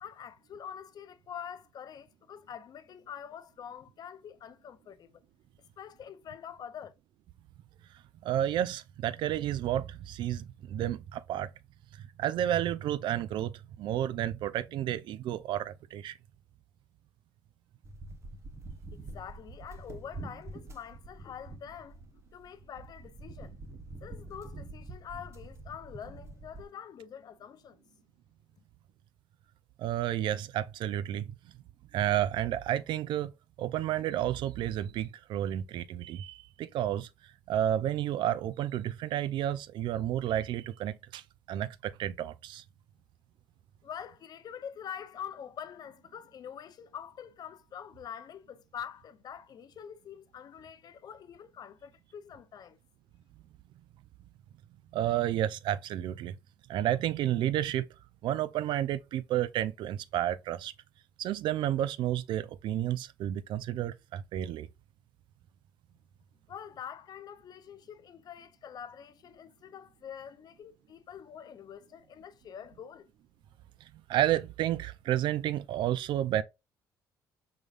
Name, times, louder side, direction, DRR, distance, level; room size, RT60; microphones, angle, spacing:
voice 1, 0.0-5.2 5.8-6.9 18.9-23.6 24.0-27.8 43.8-52.8 66.5-73.1, left 8 dB, 50° left, 0.5 m, -45 dB
voice 2, 8.2-11.5 11.9-16.2 29.8-31.3 31.9-33.3 33.6-42.6 54.9-56.4 56.7-57.9 58.2-60.7 61.2-64.7 74.1-76.4, right 12 dB, 65° right, 0.3 m, -31 dB
sound 1, 17.8-26.7, right 2 dB, 30° right, 0.8 m, -46 dB
3.8 x 3.1 x 2.4 m
supercardioid pair, 65°, 9 cm